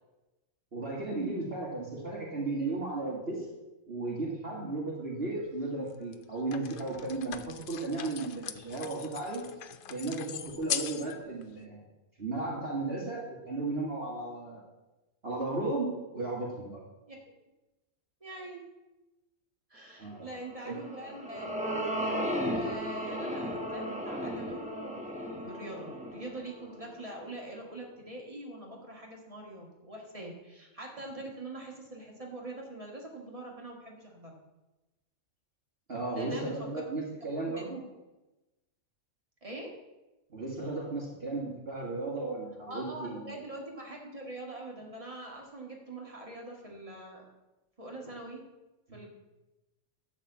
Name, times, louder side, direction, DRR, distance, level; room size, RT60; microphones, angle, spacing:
voice 1, 0.7-3.5 3.9-9.4 9.9-11.8 12.2-14.6 15.2-16.8 20.0-20.3 20.7-20.8 35.9-37.8 40.3-43.4, right 2 dB, 45° right, -4 dB, 2.0 m, -35 dB
sound 1, 5.4-5.5 6.1-11.1 11.4-11.5, left 9 dB, 65° left, 0.5 m, -40 dB
voice 2, 18.2-18.7 19.7-34.4 36.1-37.0 37.4-37.8 39.4-39.7 42.7-47.2 47.8-48.4 48.9-49.1, right 2 dB, 25° right, -1 dB, 2.1 m, -44 dB
sound 2, 20.7-27.2, equal, 5° right, 1.1 m, -35 dB
11.5 x 4.2 x 8.1 m, 1.1 s
omnidirectional pair, 1.5 m